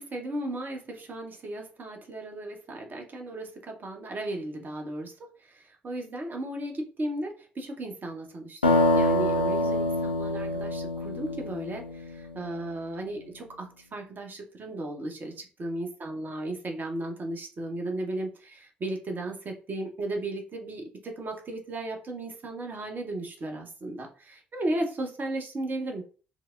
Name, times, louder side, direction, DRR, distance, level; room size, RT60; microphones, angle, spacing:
voice 1, 0.0-5.1 5.4-26.1, right 1 dB, 40° right, 2 dB, 0.9 m, -35 dB
sound 1, 8.6-12.4, left 1 dB, 85° left, 0.3 m, -26 dB
4.7 x 2.0 x 2.4 m, 0.37 s
figure-of-eight pair, 40°, 5 cm